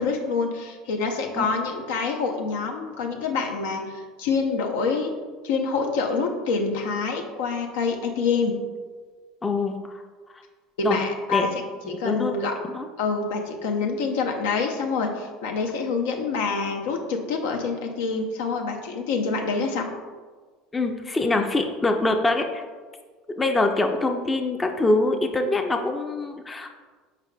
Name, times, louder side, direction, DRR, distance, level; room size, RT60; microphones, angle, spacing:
voice 1, 0.0-5.1 5.4-8.5 10.8-12.5 13.0-19.9, left 4 dB, 80° left, 2 dB, 0.6 m, -26 dB
voice 2, 9.4-10.0 10.8-11.0 11.3-11.5 11.8-12.9 20.7-22.6 23.4-26.7, left 2 dB, 20° left, 4 dB, 0.4 m, -24 dB
4.8 x 4.7 x 2.2 m, 1.4 s
hypercardioid pair, 90°, 0 cm